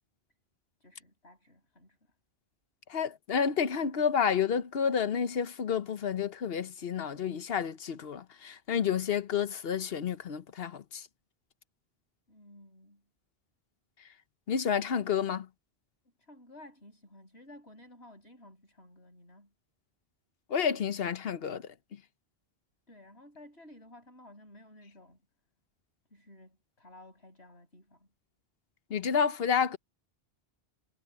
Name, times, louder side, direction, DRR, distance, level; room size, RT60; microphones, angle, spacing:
voice 1, 0.8-2.1 12.3-13.0 16.2-19.5 22.9-25.2 26.1-28.1, left 1 dB, 85° left, 8.2 m, -54 dB
voice 2, 2.9-11.1 14.5-15.5 20.5-22.0 28.9-29.8, left 7 dB, 70° left, 1.1 m, -30 dB
omnidirectional pair, 1.1 m